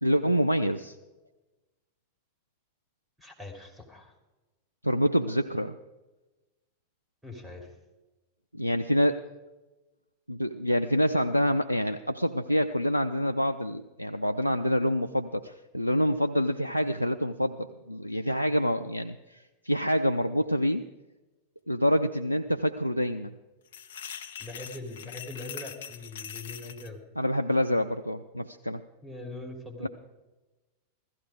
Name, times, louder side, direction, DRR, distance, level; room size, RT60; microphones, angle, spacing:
voice 1, 0.0-1.0 4.8-5.8 8.5-9.2 10.3-20.8 21.7-23.3 27.2-28.8 29.8-29.9, equal, 90° right, 8 dB, 0.4 m, -27 dB
voice 2, 3.2-4.1 7.2-7.7 24.4-27.0 29.0-29.9, left 2 dB, 5° right, 4 dB, 3.1 m, -42 dB
sound 1, 23.7-26.9, left 8 dB, 60° left, 0.8 m, -42 dB
15.5 x 14.0 x 5.0 m, 1.1 s
figure-of-eight pair, 90°, 0 cm